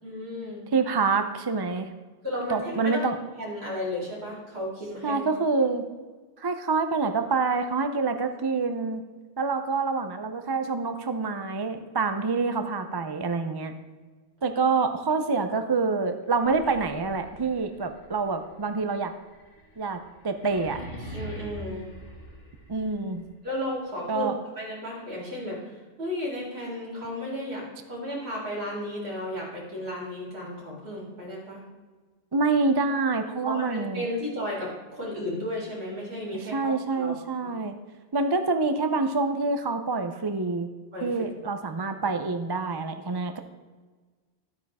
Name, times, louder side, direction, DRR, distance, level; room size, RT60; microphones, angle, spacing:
voice 1, 0.0-0.6 2.2-3.0 3.4-5.2 21.1-21.9 23.4-24.3 24.6-31.6 33.4-37.1 37.4-37.7 40.9-41.1, left 1 dB, 60° right, -5 dB, 4.3 m, -34 dB
voice 2, 0.7-1.9 2.5-3.2 5.0-5.8 6.4-9.0 9.4-13.7 14.4-19.1 19.8-20.0 20.2-20.8 22.7-23.2 24.1-24.3 32.3-34.1 36.5-37.7 38.1-40.7 41.0-43.4, right 4 dB, 30° right, 8 dB, 0.5 m, -26 dB
sound 1, 16.2-23.1, equal, 90° left, 2.1 m, -43 dB
12.5 x 8.9 x 3.6 m, 1.4 s
omnidirectional pair, 1.2 m